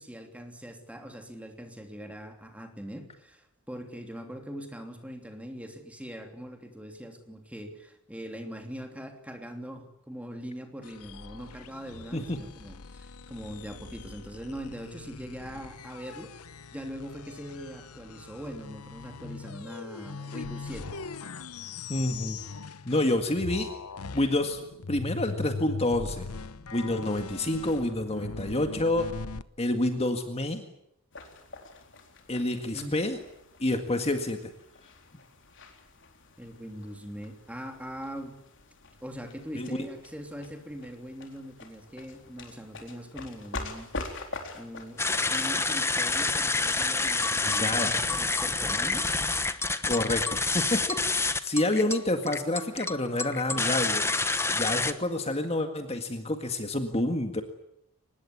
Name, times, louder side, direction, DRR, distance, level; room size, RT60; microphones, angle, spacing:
voice 1, 0.0-16.3 16.7-21.0 32.5-33.0 36.4-38.4 39.0-43.9 44.5-45.0 45.3-49.2, equal, 5° right, 5 dB, 3.0 m, -41 dB
sound 1, 10.8-23.1 23.4-29.4, left 4 dB, 85° left, 1.0 m, -41 dB
voice 2, 21.9-22.4 22.8-23.7 24.1-24.6 24.9-26.3 26.7-29.1 29.6-30.6 32.3-33.2 33.6-34.5 39.5-39.9 47.4-47.9 49.8-54.1 54.5-57.4, left 1 dB, 30° left, 6 dB, 1.9 m, -28 dB
sound 2, 31.1-46.3, left 2 dB, 55° left, 4.1 m, -45 dB
sound 3, 45.0-54.9, left 3 dB, 10° left, 1.1 m, -28 dB
24.5 x 20.5 x 9.6 m, 0.78 s
head